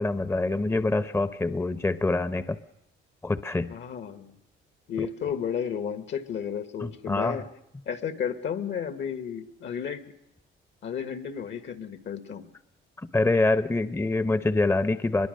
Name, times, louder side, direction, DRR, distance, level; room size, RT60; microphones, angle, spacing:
voice 1, 0.0-2.6 3.2-3.7 6.8-7.4 13.0-15.3, left 2 dB, 15° left, 13 dB, 0.7 m, -25 dB
voice 2, 3.7-4.4 4.9-7.5 7.8-10.0 10.8-12.5, left 7 dB, 65° left, 11 dB, 1.5 m, -33 dB
23.5 x 22.0 x 6.5 m, 0.88 s
cardioid pair, 90°, 20 cm